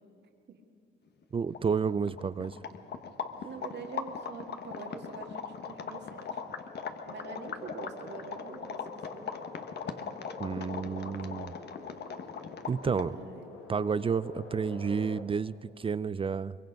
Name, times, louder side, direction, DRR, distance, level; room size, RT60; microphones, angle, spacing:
sound 1, 1.2-1.3 1.5-13.2, left 6 dB, 55° left, 1.3 m, -40 dB
voice 1, 1.3-2.6 10.4-11.5 12.7-13.2 13.7-16.6, right 6 dB, 25° right, 17 dB, 0.4 m, -30 dB
sound 2, 2.3-15.2, left 4 dB, 85° left, 2.0 m, -49 dB
voice 2, 3.4-6.4 7.1-9.3 12.7-13.6, right 5 dB, 60° right, 3 dB, 1.9 m, -45 dB
23.0 x 22.0 x 5.3 m, 2.3 s
cardioid pair, 90°, 20 cm